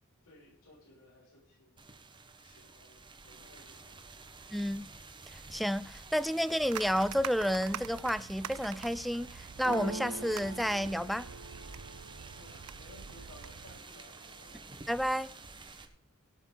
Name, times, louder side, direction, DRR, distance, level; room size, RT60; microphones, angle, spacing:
voice 1, 0.2-1.8 2.4-4.0 12.3-14.6, left 1 dB, 85° left, 6.7 m, -58 dB
sound 1, 1.8-15.9, right 3 dB, 20° right, 1.3 m, -51 dB
voice 2, 4.5-4.9 5.5-11.3 14.9-15.3, equal, ahead, 0.4 m, -31 dB
sound 2, 6.6-13.8, right 8 dB, 80° right, 0.5 m, -45 dB
sound 3, 9.6-13.5 14.0-14.6 14.9-15.6, right 2 dB, 65° right, 3.6 m, -44 dB
17.0 x 7.2 x 5.5 m
head